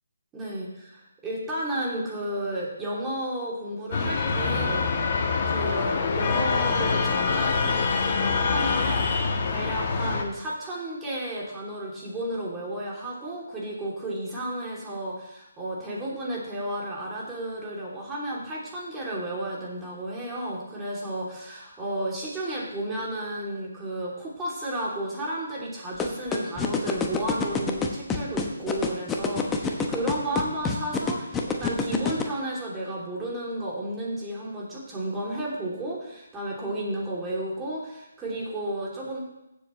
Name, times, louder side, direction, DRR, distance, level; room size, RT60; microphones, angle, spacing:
voice 1, 0.3-4.9 5.4-39.2, right 1 dB, 15° right, -5 dB, 3.0 m, -33 dB
sound 1, 3.9-10.2, left 4 dB, 45° left, 1.4 m, -25 dB
sound 2, 26.0-32.2, left 5 dB, 10° left, 1.0 m, -26 dB
15.0 x 7.4 x 3.2 m, 0.87 s
figure-of-eight pair, 150°, 0 cm